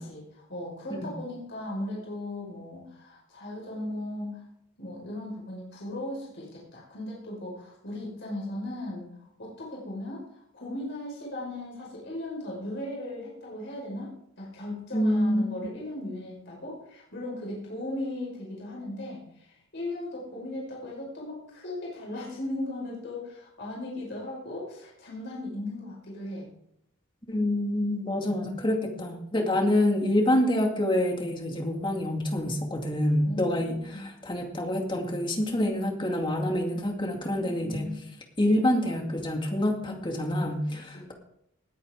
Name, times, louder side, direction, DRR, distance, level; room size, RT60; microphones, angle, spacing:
voice 1, 0.0-4.4 4.8-9.1 9.4-26.5 28.3-28.8 33.2-34.1 37.3-38.1 40.7-41.1, left 1 dB, 60° left, -3 dB, 5.7 m, -37 dB
voice 2, 14.9-15.4 27.3-37.9 38.4-41.1, left 1 dB, 25° left, 2 dB, 2.3 m, -27 dB
19.5 x 9.1 x 3.8 m, 0.73 s
head